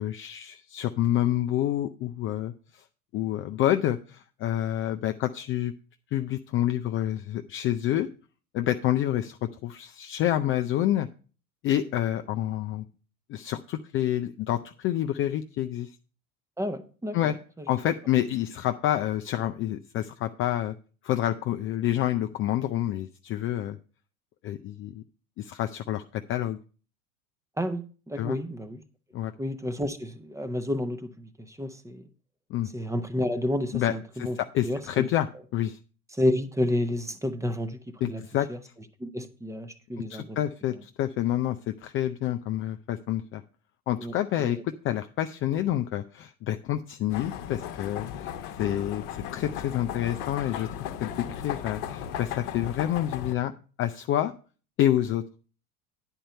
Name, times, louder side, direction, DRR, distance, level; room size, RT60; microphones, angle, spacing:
voice 1, 0.0-2.8 3.1-5.7 6.1-8.1 8.5-9.4 9.6-11.1 11.6-12.8 13.3-15.9 17.1-17.3 17.7-20.7 21.0-23.8 24.4-25.0 25.4-26.6 28.2-28.4 29.1-29.3 32.5-32.7 33.7-35.8 38.0-38.5 40.1-43.4 43.9-50.7 51.0-53.5 53.8-54.3 54.8-55.2, left 12 dB, 30° left, 0.4 m, -28 dB
voice 2, 16.6-17.4 27.6-28.8 29.4-32.1 32.7-34.4 34.6-35.0 36.2-38.2 38.5-38.6 39.0-40.4 44.0-44.1 44.4-44.5, left 1 dB, 5° right, 0.7 m, -30 dB
sound 1, 47.1-53.3, left 9 dB, 50° left, 1.0 m, -36 dB
10.0 x 4.5 x 6.5 m
figure-of-eight pair, 75°, 46 cm